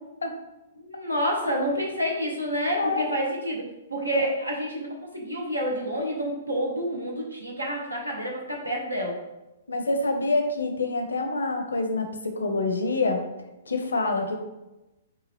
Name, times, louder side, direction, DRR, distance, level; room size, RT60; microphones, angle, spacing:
voice 1, 0.8-3.6 3.9-9.2, equal, 85° right, -1 dB, 0.8 m, -28 dB
voice 2, 2.7-3.0 4.1-4.2 9.7-13.2 13.7-14.3, left 3 dB, 70° left, 5 dB, 0.6 m, -26 dB
5.3 x 2.4 x 3.3 m, 1.0 s
figure-of-eight pair, 115°, 0 cm